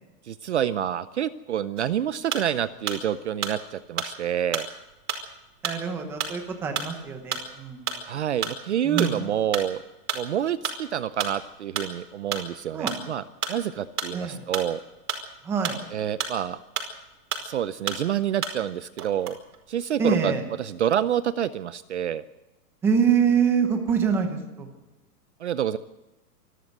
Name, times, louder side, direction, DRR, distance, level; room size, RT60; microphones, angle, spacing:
voice 1, 0.3-4.7 8.0-9.8 10.1-13.2 13.5-14.8 15.9-16.6 17.4-19.4 19.7-20.3 20.6-22.2 25.4-25.8, right 10 dB, 45° right, 15 dB, 0.6 m, -27 dB
sound 1, 1.8-3.1 3.4-17.1 17.3-18.7 19.0-20.2 20.6-21.2, right 6 dB, 70° right, 5.1 m, -32 dB
voice 2, 5.6-8.2 8.8-9.2 12.7-13.0 14.1-14.5 15.4-15.8 20.0-20.4 22.8-24.7, right 6 dB, 5° right, 5 dB, 0.8 m, -25 dB
26.0 x 13.0 x 7.9 m, 1.0 s
hypercardioid pair, 175°, 47 cm